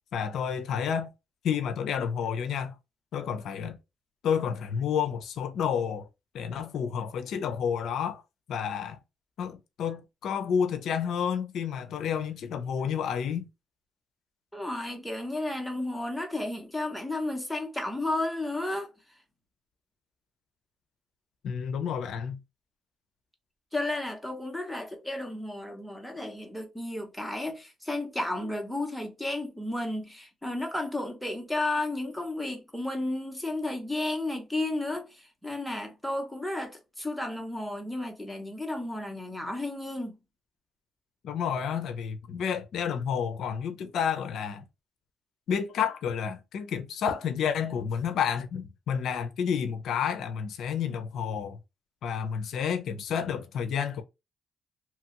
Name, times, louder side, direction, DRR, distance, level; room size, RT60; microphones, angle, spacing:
voice 1, 0.1-1.1 1.4-2.7 3.1-3.8 4.2-6.0 6.3-8.2 8.5-9.0 9.4-13.5 21.4-22.4 41.2-44.6 45.5-51.6 52.0-54.0, left 7 dB, 75° left, 0.5 m, -30 dB
voice 2, 14.5-18.9 23.7-40.1, left 2 dB, ahead, 1.0 m, -33 dB
2.9 x 2.3 x 2.8 m
cardioid pair, 90°, 0 cm